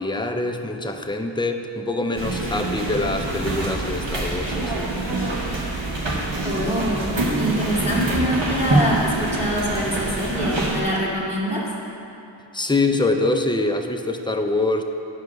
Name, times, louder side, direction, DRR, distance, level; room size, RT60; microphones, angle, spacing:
voice 1, 0.0-4.9 12.5-14.8, left 2 dB, 10° left, 4 dB, 0.6 m, -24 dB
sound 1, 2.2-10.8, right 2 dB, 80° right, 1.3 m, -25 dB
voice 2, 6.4-7.1 7.4-11.6, equal, 15° right, -7 dB, 2.2 m, -24 dB
9.2 x 5.0 x 6.1 m, 2.7 s
wide cardioid pair, 50°, 44 cm